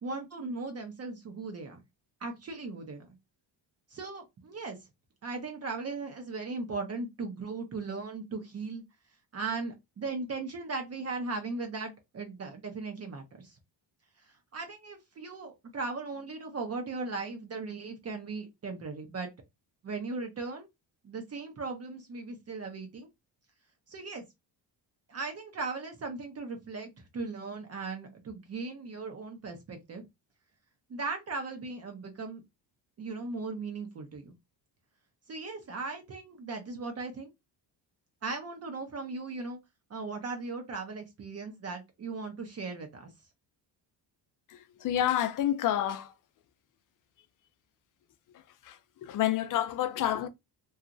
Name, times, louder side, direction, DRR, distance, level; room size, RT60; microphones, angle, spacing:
voice 1, 0.0-1.8 2.2-3.1 3.9-4.8 5.2-8.8 9.3-13.6 14.2-19.3 19.8-20.7 21.0-23.1 23.9-24.2 25.1-30.1 30.9-32.4 33.0-34.3 35.3-37.3 38.2-39.6 39.9-43.1, right 3 dB, 35° right, 0.6 m, -38 dB
voice 2, 44.5-46.1 48.3-50.3, left 12 dB, 45° left, 0.5 m, -29 dB
2.9 x 2.3 x 2.5 m
cardioid pair, 135°, 45 cm